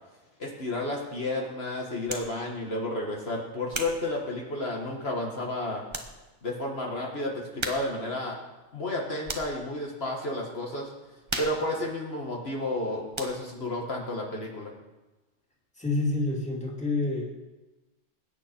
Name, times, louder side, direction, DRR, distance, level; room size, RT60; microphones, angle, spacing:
voice 1, 0.4-5.8 6.4-8.4 8.7-10.9 11.4-14.7, left 1 dB, 60° left, 0 dB, 1.8 m, -31 dB
sound 1, 2.1-2.4 3.0-5.0 5.5-5.6 5.9-6.2 6.5-6.6 7.6-8.1 8.4-9.7 10.1-10.4 10.7-12.8 13.1-13.6, right 2 dB, 25° right, 1.1 m, -38 dB
voice 2, 15.8-17.2, left 2 dB, 5° left, -2 dB, 2.5 m, -28 dB
20.5 x 9.3 x 4.4 m, 1.1 s
omnidirectional pair, 1.2 m